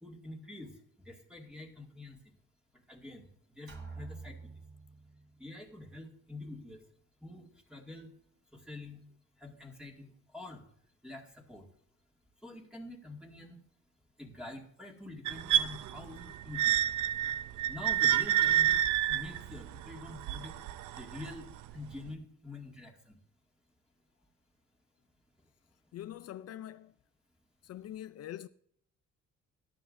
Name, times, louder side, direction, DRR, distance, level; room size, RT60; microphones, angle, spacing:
voice 1, 0.0-0.8 1.1-2.2 2.9-3.3 3.5-4.5 5.4-6.8 7.2-8.1 8.5-9.0 9.4-10.6 11.0-11.6 12.4-13.6 14.2-16.7 17.7-18.8 19.1-20.5 21.0-23.2, left 2 dB, 5° right, 2.1 m, -46 dB
sound 1, 3.7-5.5, right 4 dB, 45° right, 3.8 m, -47 dB
sound 2, 15.3-21.3 22.1-22.2, right 11 dB, 80° right, 0.5 m, -29 dB
voice 2, 25.9-26.9 27.6-28.5, left 12 dB, 55° left, 0.4 m, -43 dB
15.0 x 10.0 x 2.6 m
cardioid pair, 90°, 30 cm